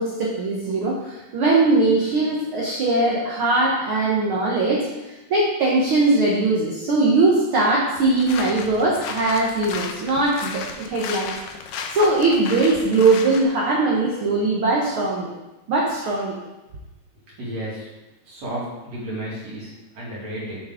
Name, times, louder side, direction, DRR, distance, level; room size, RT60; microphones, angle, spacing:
voice 1, 0.0-4.9 5.3-11.3 11.9-15.3 15.7-16.4, right 2 dB, 90° right, -4 dB, 1.1 m, -20 dB
sound 1, 8.0-13.4, left 5 dB, 80° left, 1.7 m, -34 dB
voice 2, 17.3-17.9 18.2-20.6, right 1 dB, 55° right, -6 dB, 3.1 m, -32 dB
8.0 x 6.2 x 3.7 m, 1.0 s
omnidirectional pair, 4.0 m